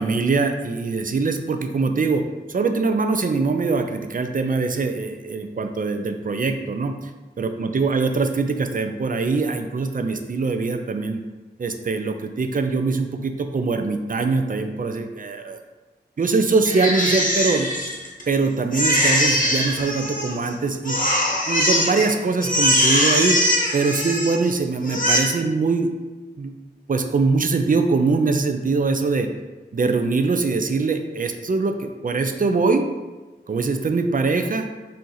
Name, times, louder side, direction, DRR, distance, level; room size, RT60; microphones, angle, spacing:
voice 1, 0.0-7.0 7.4-11.2 11.6-15.6 16.2-17.7 18.3-21.0 21.5-23.4 23.7-25.9 26.4-26.5 26.9-29.3 29.7-32.9 33.5-34.7, right 4 dB, 45° right, 6 dB, 0.4 m, -22 dB
Crying sobbing, 16.7-18.3 18.7-20.5 20.9-22.1 22.4-24.5 24.8-25.2, equal, 45° left, 0.9 m, -21 dB
4.3 x 2.6 x 3.9 m, 1.2 s
wide cardioid pair, 60°, 19 cm